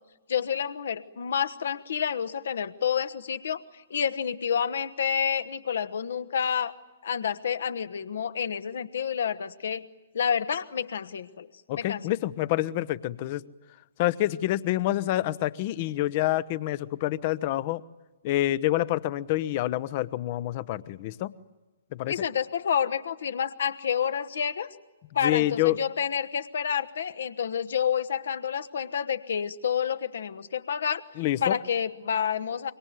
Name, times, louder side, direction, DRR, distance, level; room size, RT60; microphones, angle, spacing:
voice 1, 0.3-6.7 7.0-9.8 10.1-11.5 11.8-12.0 22.1-24.7 25.1-31.0 31.4-32.7, left 8 dB, 60° left, 13 dB, 1.2 m, -29 dB
voice 2, 11.7-13.4 14.0-17.8 18.2-21.3 21.9-22.1 25.2-25.8 31.2-31.6, left 15 dB, 40° left, 20 dB, 0.8 m, -27 dB
25.5 x 23.5 x 9.2 m, 1.2 s
figure-of-eight pair, 120°, 0 cm